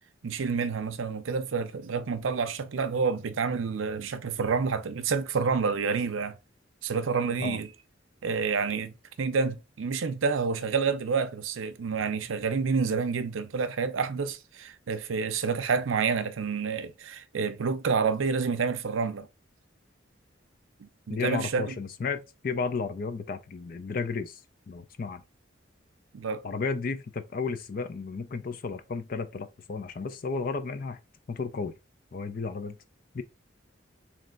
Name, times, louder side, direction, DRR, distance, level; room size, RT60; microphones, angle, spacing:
voice 1, 0.2-6.4 6.8-7.7 8.2-19.3 20.8-21.7 26.1-26.4, right 5 dB, 85° right, 0.5 m, -28 dB
voice 2, 21.1-24.4 24.7-25.2 26.4-31.0 31.3-31.7 32.1-32.8 33.1-33.2, left 4 dB, 45° left, 0.4 m, -33 dB
3.3 x 3.2 x 3.7 m
head